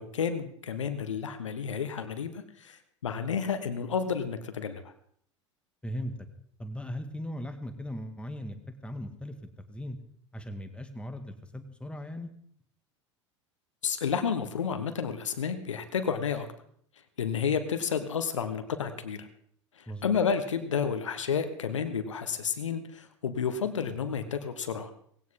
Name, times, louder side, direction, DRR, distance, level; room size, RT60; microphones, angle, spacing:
voice 1, 0.0-4.8 13.8-16.5 17.2-19.3 19.8-24.9, left 6 dB, 75° left, 9 dB, 1.3 m, -31 dB
voice 2, 5.8-6.3 6.6-8.6 8.8-9.4 9.7-10.0 10.3-12.3 19.9-20.1, equal, 5° left, 7 dB, 1.9 m, -38 dB
18.5 x 17.0 x 3.8 m, 0.63 s
figure-of-eight pair, 80°, 16 cm